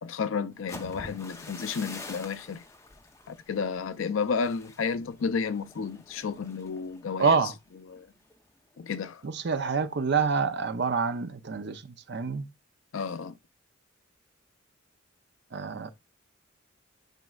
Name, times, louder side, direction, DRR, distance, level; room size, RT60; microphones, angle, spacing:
voice 1, 0.0-2.6 3.3-7.5 7.9-8.1 8.8-9.2 12.9-13.4, left 5 dB, 80° left, 0.5 m, -32 dB
sound 1, 0.5-8.4 8.7-9.1 9.4-9.8, left 2 dB, 15° left, 0.7 m, -47 dB
voice 2, 7.2-7.5 9.2-12.4 15.5-15.9, right 5 dB, 55° right, 0.6 m, -27 dB
9.0 x 5.2 x 2.3 m
head